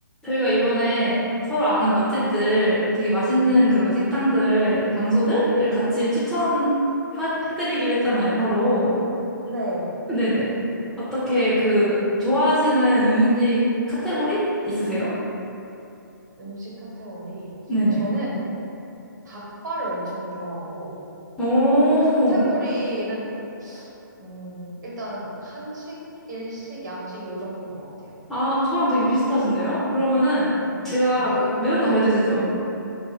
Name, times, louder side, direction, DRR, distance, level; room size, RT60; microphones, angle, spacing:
voice 1, 0.2-6.7 7.1-8.9 10.1-10.5 11.1-13.6 13.9-15.1 17.7-18.0 21.4-22.4 28.3-30.5 30.8-32.5, equal, 5° left, -13 dB, 0.3 m, -21 dB
voice 2, 9.4-9.9 16.4-17.5 18.0-18.4 19.2-21.0 22.0-23.3 23.6-23.9 24.2-26.0 26.3-28.2 30.6-30.9 31.1-31.3, right 1 dB, 60° right, -5 dB, 0.9 m, -33 dB
2.6 x 2.3 x 2.9 m, 2.8 s
figure-of-eight pair, 135°, 11 cm